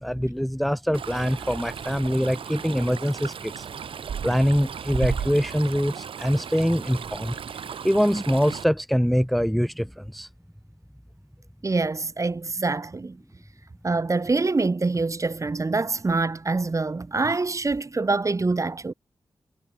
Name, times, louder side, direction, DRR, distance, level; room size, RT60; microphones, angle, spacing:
voice 1, 0.0-3.7 4.2-7.4 7.8-10.3, equal, ahead, 1.3 m, -24 dB
Stream, 0.9-8.6, right 7 dB, 90° right, 3.8 m, -35 dB
voice 2, 11.6-13.2 13.8-18.9, right 3 dB, 35° right, 5.4 m, -25 dB
wide cardioid pair, 85°, 9 cm